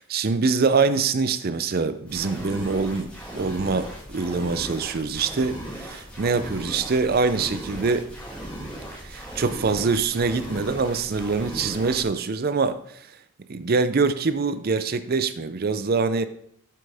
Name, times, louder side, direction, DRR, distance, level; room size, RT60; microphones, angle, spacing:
voice 1, 0.0-8.1 9.0-12.8 13.5-16.3, right 4 dB, 45° right, 0.5 m, -24 dB
sound 1, 2.0-12.0, right 1 dB, 5° left, 2.6 m, -37 dB
8.5 x 7.7 x 3.5 m
head